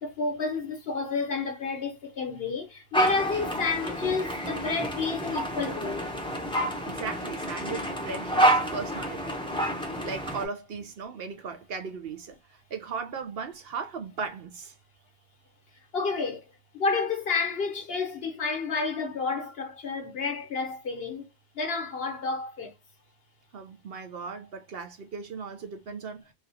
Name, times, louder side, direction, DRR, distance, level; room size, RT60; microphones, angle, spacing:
voice 1, 0.0-6.1 15.9-16.5 16.7-21.3 21.5-22.7, left 4 dB, 60° left, 1.2 m, -30 dB
sound 1, 2.9-10.4, right 1 dB, 5° left, 0.7 m, -28 dB
voice 2, 6.8-9.4 10.0-14.7 23.5-26.3, right 5 dB, 65° right, 0.8 m, -37 dB
3.4 x 2.3 x 2.7 m
omnidirectional pair, 1.1 m